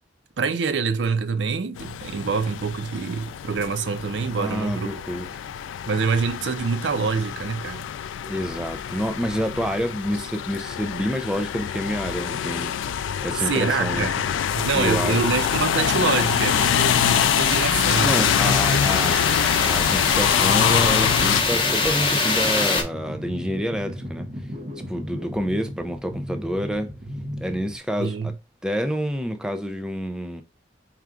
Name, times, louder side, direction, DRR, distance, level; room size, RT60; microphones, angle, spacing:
voice 1, 0.4-5.0 5.8-7.9 13.4-14.2 14.5-18.8 28.0-28.4, right 5 dB, 70° right, 0.5 m, -26 dB
sound 1, 1.8-21.4, left 9 dB, 85° left, 0.3 m, -25 dB
voice 2, 4.4-5.3 8.3-12.8 13.2-14.1 14.7-15.2 18.0-19.2 19.6-24.3 24.9-26.9 27.4-28.3 28.6-30.4, equal, 5° right, 0.3 m, -28 dB
sound 2, 14.2-22.8, left 3 dB, 30° left, 0.8 m, -25 dB
sound 3, 21.0-27.8, equal, 35° right, 0.8 m, -35 dB
4.4 x 2.3 x 3.6 m
head